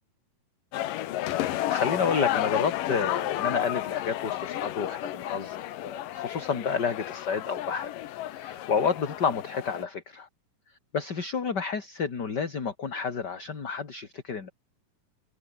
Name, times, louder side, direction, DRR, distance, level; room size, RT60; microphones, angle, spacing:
sound 1, 0.7-9.8, left 14 dB, 80° left, 2.8 m, -32 dB
voice 1, 1.4-7.9 8.3-10.3 10.9-14.5, left 6 dB, 35° left, 2.7 m, -30 dB
omnidirectional pair, 3.9 m